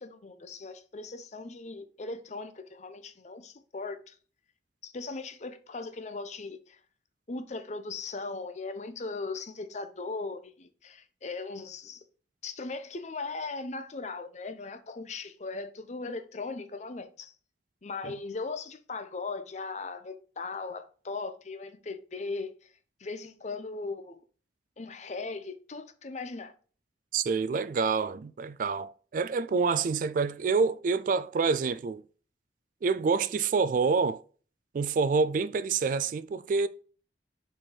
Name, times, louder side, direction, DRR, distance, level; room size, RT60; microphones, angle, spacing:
voice 1, 0.0-4.2 4.8-6.8 7.3-12.0 12.4-17.3 17.8-22.5 23.0-24.2 24.8-26.5, left 3 dB, 40° left, 0.6 m, -38 dB
voice 2, 27.1-32.0 32.8-34.2 34.7-36.7, right 4 dB, 45° right, 0.3 m, -27 dB
4.4 x 4.4 x 4.9 m
head